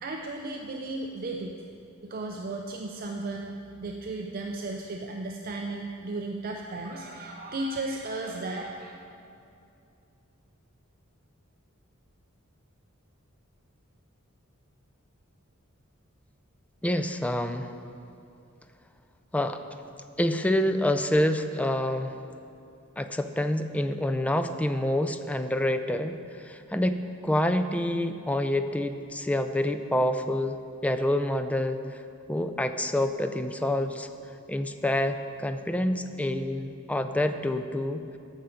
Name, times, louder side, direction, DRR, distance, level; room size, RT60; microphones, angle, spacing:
voice 1, 0.0-1.6 2.0-8.9, right 2 dB, 45° right, 2 dB, 0.5 m, -35 dB
voice 2, 16.8-17.7 19.3-19.6 20.2-22.2 23.0-32.0 32.3-34.1 34.5-38.0, left 1 dB, 5° left, 8 dB, 0.4 m, -27 dB
14.5 x 5.8 x 5.1 m, 2.6 s
head